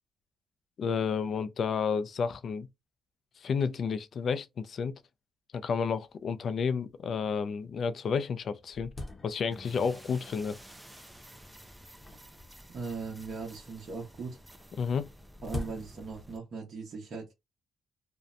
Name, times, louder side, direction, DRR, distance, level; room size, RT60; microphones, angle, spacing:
voice 1, 0.8-2.7 3.4-4.9 5.5-8.9 9.2-10.6 14.8-15.1, left 6 dB, 55° left, 0.4 m, -31 dB
sound 1, 5.8-5.9 6.1-6.2 6.9-7.0 7.6-7.7 8.1-9.9 10.6-11.0 12.0-13.3 14.6-16.4, left 2 dB, 25° left, 0.8 m, -44 dB
sound 2, 9.5-16.4, equal, 10° right, 0.4 m, -52 dB
voice 2, 12.7-14.4 15.4-17.3, right 4 dB, 55° right, 1.0 m, -39 dB
2.6 x 2.1 x 2.5 m
cardioid pair, 90°, 0 cm